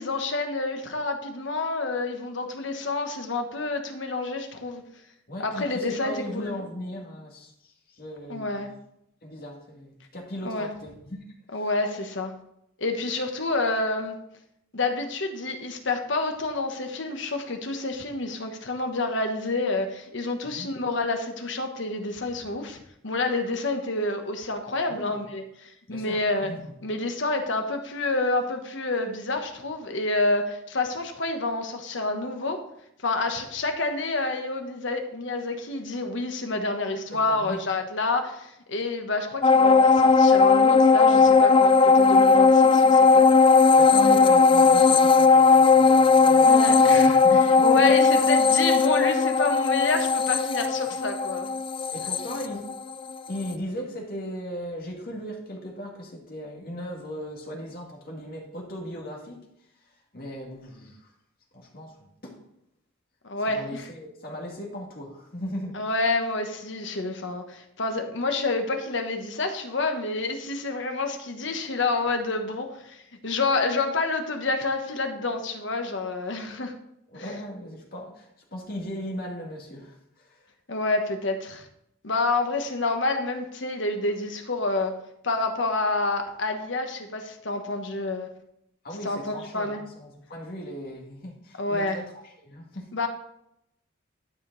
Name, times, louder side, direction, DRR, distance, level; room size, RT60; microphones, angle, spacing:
voice 1, 0.0-4.8 5.4-6.6 8.3-8.7 10.4-10.7 11.5-12.3 12.8-14.1 14.7-22.8 23.0-26.5 26.8-32.6 33.0-43.3 44.1-44.2 46.4-47.2 47.6-51.5 63.2-63.9 65.7-76.7 77.1-77.2 80.7-81.6 82.0-85.0 85.2-88.3 89.0-89.8 91.6-92.0 92.9-93.1, left 3 dB, 65° left, 5 dB, 1.2 m, -28 dB
voice 2, 5.3-8.7 9.2-11.2 11.5-11.7 20.4-20.7 24.9-25.2 25.9-26.7 37.1-37.6 43.8-47.6 51.9-52.7 53.3-59.5 59.8-61.1 61.5-62.4 63.4-65.8 77.1-80.5 88.8-92.1 92.4-92.9, equal, 45° left, -1 dB, 2.2 m, -38 dB
sound 1, 39.4-53.1 53.5-53.6, left 4 dB, 25° left, 0.3 m, -17 dB
12.0 x 5.2 x 4.0 m, 0.77 s
head